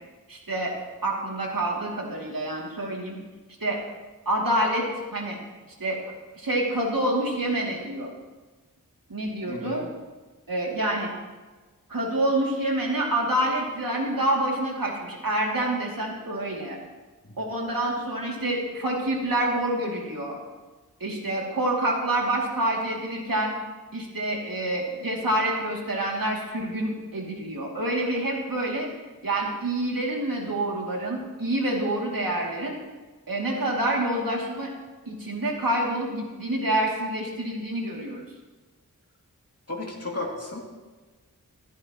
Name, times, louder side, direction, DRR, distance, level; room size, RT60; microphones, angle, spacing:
voice 1, 0.3-0.8 1.0-3.2 3.6-3.8 4.3-5.4 5.8-8.1 9.1-9.9 10.5-11.1 11.9-16.8 17.4-20.4 21.0-23.6 23.9-28.9 29.2-32.8 33.3-34.7 35.1-38.2, right 1 dB, 70° right, -2 dB, 2.7 m, -27 dB
voice 2, 9.5-9.9 17.2-17.3 39.7-40.6, left 2 dB, 45° left, -1 dB, 2.6 m, -34 dB
15.0 x 14.0 x 3.1 m, 1.3 s
wide cardioid pair, 50°, 35 cm